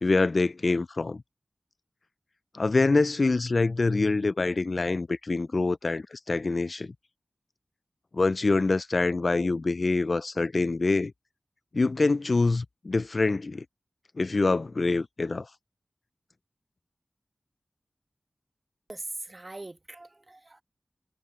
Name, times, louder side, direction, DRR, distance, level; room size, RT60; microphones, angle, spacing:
voice 1, 0.0-1.2 2.5-6.9 8.1-11.1 11.7-13.6 14.2-15.5, left 3 dB, 60° left, 0.3 m, -25 dB
voice 2, 18.9-20.6, right 2 dB, 40° right, 1.6 m, -41 dB
cardioid pair, 40°, 0 cm